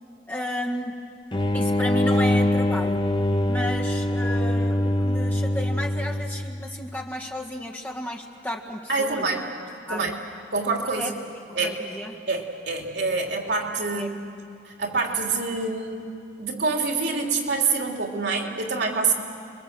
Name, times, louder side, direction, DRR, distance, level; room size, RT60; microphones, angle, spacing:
voice 1, 0.3-1.0 1.5-3.1 3.5-9.3 9.9-10.1 11.0-11.2 11.6-12.1 14.0-14.1, equal, 10° left, -1 dB, 1.8 m, -33 dB
sound 1, 1.3-6.7, left 1 dB, 30° left, 0.8 m, -23 dB
voice 2, 8.9-9.5 9.9-10.2 10.5-11.1 11.5-11.8 12.3-14.1 14.6-16.1 16.4-19.1, right 4 dB, 75° right, 2 dB, 3.0 m, -26 dB
29.0 x 22.5 x 7.8 m, 2.5 s
head